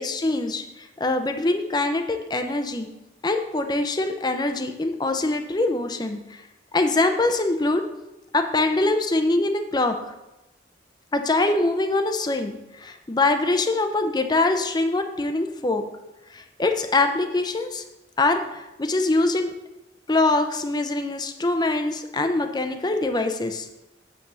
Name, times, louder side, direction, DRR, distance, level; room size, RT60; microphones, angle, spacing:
voice 1, 0.0-2.9 3.2-6.4 6.7-7.8 8.3-9.9 11.1-15.8 16.3-17.8 18.2-19.5 20.1-23.7, left 2 dB, 25° left, 6 dB, 0.6 m, -23 dB
8.6 x 3.5 x 6.7 m, 0.94 s
head